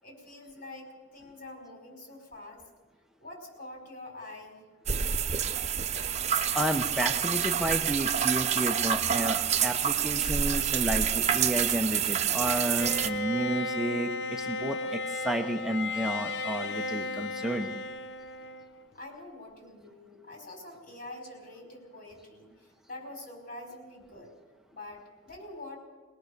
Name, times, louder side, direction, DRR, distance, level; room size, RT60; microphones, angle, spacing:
voice 1, 0.0-2.6 3.2-4.6 18.9-24.3 24.7-25.8, left 2 dB, 55° left, 2 dB, 5.5 m, -45 dB
sound 1, 4.9-13.1, right 8 dB, 40° right, 0.8 m, -27 dB
voice 2, 6.5-17.8, right 1 dB, ahead, 3 dB, 0.8 m, -31 dB
Bowed string instrument, 12.8-18.8, left 2 dB, 70° left, 0.8 m, -34 dB
22.0 x 19.0 x 6.7 m, 1.4 s
head